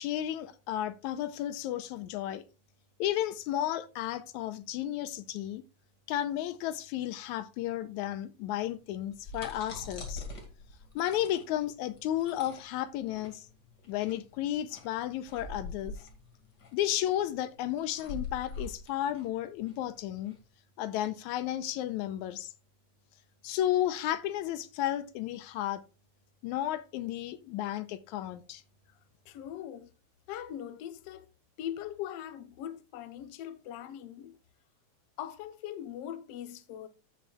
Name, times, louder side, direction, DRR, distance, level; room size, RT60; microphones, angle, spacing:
voice 1, 0.0-2.4 3.0-5.6 6.1-10.2 11.0-13.5 13.9-15.9 16.7-20.4 20.8-22.5 23.4-25.8 26.4-28.6, left 12 dB, 85° left, 2.1 m, -33 dB
sound 1, 9.0-20.4, left 3 dB, 35° left, 2.3 m, -44 dB
voice 2, 29.3-29.9 30.3-31.3 31.6-34.4 35.2-36.9, left 11 dB, 65° left, 1.8 m, -41 dB
14.5 x 7.0 x 2.3 m
omnidirectional pair, 3.3 m